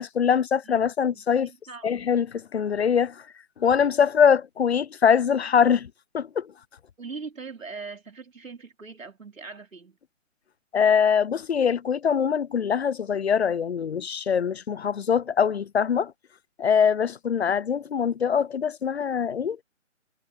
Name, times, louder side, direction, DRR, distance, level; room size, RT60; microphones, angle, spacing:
voice 1, 0.0-1.5 1.8-3.2 3.6-6.5 10.7-16.1 16.6-19.6, left 7 dB, 55° left, 0.6 m, -23 dB
voice 2, 1.1-2.1 7.0-10.0, right 4 dB, 80° right, 3.7 m, -41 dB
figure-of-eight pair, 155°, 39 cm